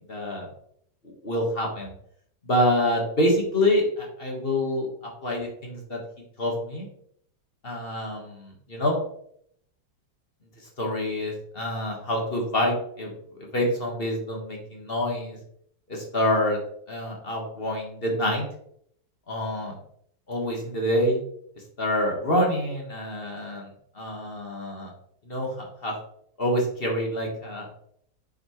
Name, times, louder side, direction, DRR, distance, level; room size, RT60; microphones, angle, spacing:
voice 1, 0.1-0.5 1.2-1.9 2.4-4.9 5.2-6.0 6.4-6.9 7.6-9.0 10.8-13.1 13.5-15.4 15.9-16.6 16.9-18.4 19.3-19.7 20.3-21.2 21.8-23.7 23.9-24.9 25.3-25.9 26.4-27.7, left 1 dB, 35° left, -1 dB, 1.4 m, -26 dB
6.7 x 5.2 x 3.0 m, 0.68 s
omnidirectional pair, 2.1 m